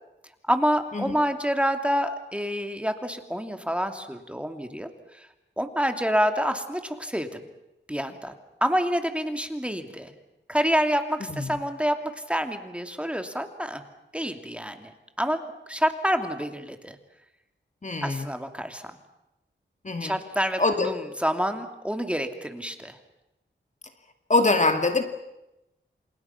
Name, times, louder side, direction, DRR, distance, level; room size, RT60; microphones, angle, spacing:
voice 1, 0.4-5.3 5.6-7.4 7.9-8.3 8.6-10.1 10.5-13.8 14.1-14.9 15.2-15.4 15.7-17.0 18.0-18.9 20.0-23.0, equal, 5° right, 6 dB, 2.7 m, -27 dB
voice 2, 11.3-11.6 17.8-18.3 19.8-20.1 20.6-20.9 24.3-25.0, left 3 dB, 40° left, 6 dB, 2.2 m, -24 dB
28.0 x 28.0 x 5.9 m, 0.93 s
wide cardioid pair, 65°, 20 cm